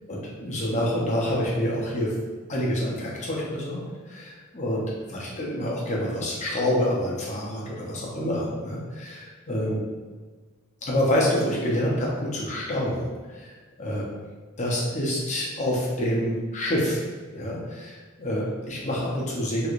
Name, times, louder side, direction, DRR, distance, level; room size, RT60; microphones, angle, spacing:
voice 1, 0.1-2.1 2.5-4.8 5.1-9.8 10.8-13.1 13.3-13.5 13.8-14.1 14.6-17.1 17.3-19.7, left 1 dB, 35° left, -4 dB, 0.7 m, -27 dB
3.1 x 3.0 x 2.4 m, 1.4 s
head